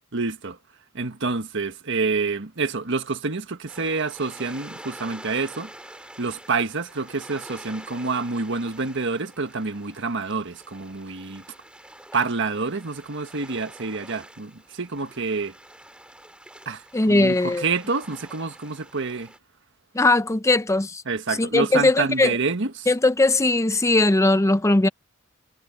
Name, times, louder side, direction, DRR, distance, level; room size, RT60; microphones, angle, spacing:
voice 1, 0.1-0.6 0.9-5.7 6.2-11.4 12.1-15.5 16.6-19.3 21.1-22.9, right 4 dB, 60° right, 1.5 m, -27 dB
sound 1, 3.7-19.4, right 1 dB, 5° right, 2.2 m, -46 dB
voice 2, 16.9-17.6 19.9-21.0 21.4-22.3 22.9-24.9, left 2 dB, 15° left, 0.5 m, -19 dB
head